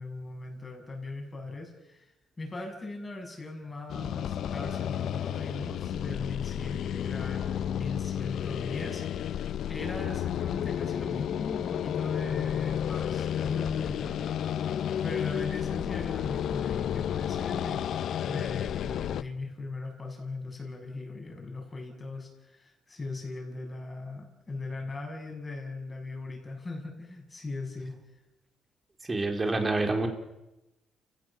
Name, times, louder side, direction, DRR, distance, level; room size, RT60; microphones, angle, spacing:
voice 1, 0.0-2.0 2.4-14.3 15.0-17.8 18.2-28.0, left 3 dB, 25° left, 2 dB, 7.4 m, -39 dB
sound 1, 3.9-19.2, left 9 dB, 70° left, 0.8 m, -32 dB
voice 2, 29.1-30.1, right 2 dB, 25° right, 4 dB, 4.3 m, -27 dB
30.0 x 17.0 x 7.4 m, 0.94 s
cardioid pair, 90°, 0 cm